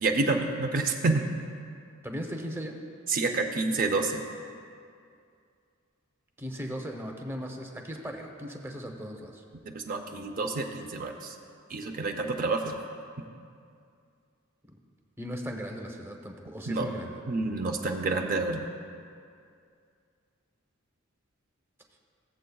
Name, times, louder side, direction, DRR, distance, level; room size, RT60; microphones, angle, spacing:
voice 1, 0.0-1.3 3.1-4.2 9.7-11.3 11.7-12.8 16.7-16.9 17.3-18.7, right 3 dB, 45° right, 3 dB, 0.6 m, -28 dB
voice 2, 2.0-2.8 6.4-9.4 15.2-17.2, equal, 10° right, 2 dB, 0.8 m, -37 dB
16.0 x 7.5 x 2.3 m, 2.3 s
head